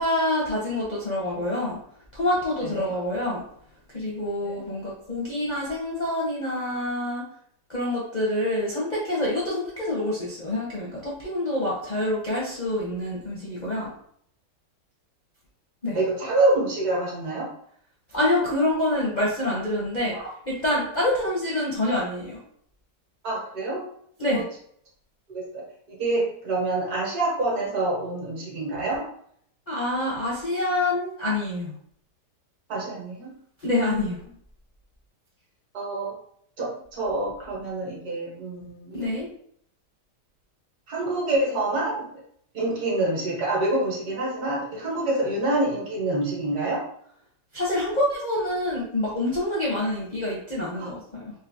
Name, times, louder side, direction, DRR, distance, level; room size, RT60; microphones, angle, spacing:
voice 1, 0.0-1.8 2.1-3.4 3.9-7.2 7.7-13.9 15.8-16.0 18.1-20.2 20.5-22.4 24.2-24.4 29.7-31.7 33.6-34.2 38.9-39.3 47.5-51.3, left 1 dB, 45° left, -6 dB, 0.6 m, -26 dB
voice 2, 2.6-2.9 4.4-4.7 15.9-17.5 20.1-20.3 23.2-23.8 24.3-24.5 25.3-29.1 32.7-33.3 33.6-34.1 35.7-36.1 36.6-38.9 40.9-42.1 42.5-46.8 50.8-50.9, right 2 dB, 65° right, -4 dB, 1.6 m, -27 dB
3.8 x 2.5 x 2.6 m, 0.66 s
omnidirectional pair, 1.8 m